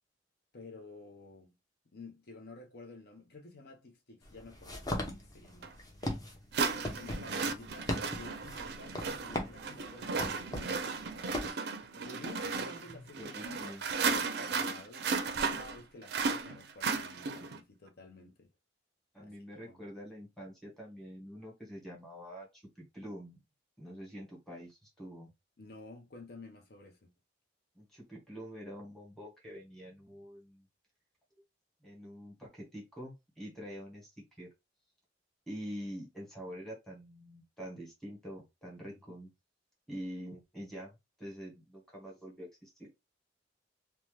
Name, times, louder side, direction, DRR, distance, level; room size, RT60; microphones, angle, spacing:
voice 1, 0.5-1.5 1.9-5.8 6.7-10.9 11.9-18.5 19.2-19.8 25.6-27.1 38.9-39.2, left 2 dB, 60° left, 0.6 m, -52 dB
sound 1, 4.2-11.5, left 1 dB, 20° left, 0.7 m, -39 dB
sound 2, 5.6-5.7 6.5-17.6, right 4 dB, 60° right, 0.4 m, -35 dB
voice 2, 7.3-7.6 13.2-13.8 19.1-23.4 23.8-25.3 27.7-30.7 31.8-34.1 34.4-34.5 35.5-39.3 39.9-42.9, equal, ahead, 1.2 m, -46 dB
2.7 x 2.2 x 3.2 m
head